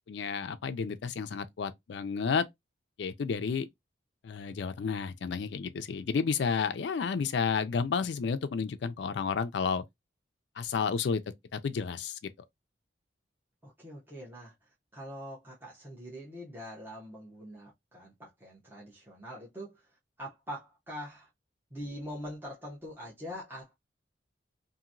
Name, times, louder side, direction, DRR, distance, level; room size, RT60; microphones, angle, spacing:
voice 1, 0.1-2.4 3.0-3.7 4.2-9.8 10.6-11.2 11.5-12.2, left 5 dB, 65° left, 0.4 m, -31 dB
voice 2, 13.6-14.5 14.9-19.9 20.2-21.3 21.7-23.8, equal, 10° right, 0.8 m, -43 dB
2.8 x 2.6 x 2.5 m
head